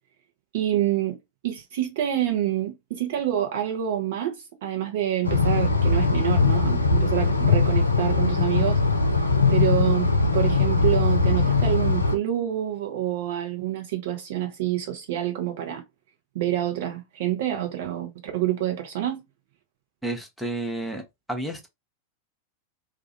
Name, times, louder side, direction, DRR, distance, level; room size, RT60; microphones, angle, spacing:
voice 1, 0.5-1.2 1.4-8.8 9.5-15.8 16.3-19.2, right 12 dB, 55° right, 0.8 m, -27 dB
sound 1, 5.2-12.2, left 3 dB, 80° left, 0.4 m, -21 dB
voice 2, 20.0-21.0 21.3-21.7, right 1 dB, ahead, 0.8 m, -30 dB
2.4 x 2.4 x 2.8 m
figure-of-eight pair, 90°, 0 cm